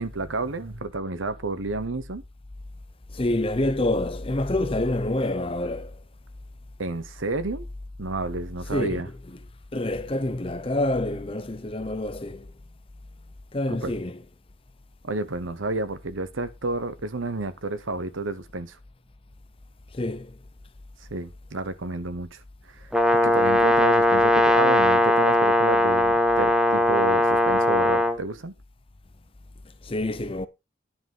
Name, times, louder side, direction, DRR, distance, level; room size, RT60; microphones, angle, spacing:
voice 1, 0.0-2.2 6.8-7.7 8.0-9.1 13.7-13.9 15.0-18.8 21.1-22.4 22.7-28.5, right 3 dB, 90° right, 1.0 m, -30 dB
voice 2, 3.1-6.0 8.7-9.0 9.7-12.5 13.5-14.2 19.9-20.3 22.9-23.0 29.8-30.5, left 1 dB, 30° left, 0.6 m, -27 dB
Brass instrument, 22.9-28.2, left 1 dB, 5° right, 1.1 m, -19 dB
10.0 x 5.8 x 5.4 m
head